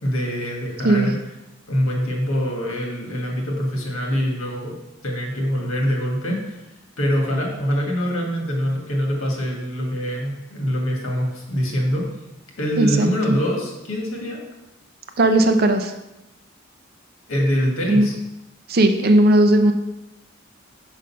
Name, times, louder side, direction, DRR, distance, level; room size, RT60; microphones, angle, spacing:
voice 1, 0.0-1.1 1.7-4.7 5.0-6.6 7.0-12.0 12.6-14.4 17.3-18.1, equal, 80° left, 0 dB, 1.7 m, -24 dB
voice 2, 12.8-13.4 15.2-15.9 17.9-18.1 18.7-19.7, right 1 dB, 50° right, 7 dB, 0.6 m, -17 dB
5.2 x 5.0 x 5.6 m, 0.95 s
head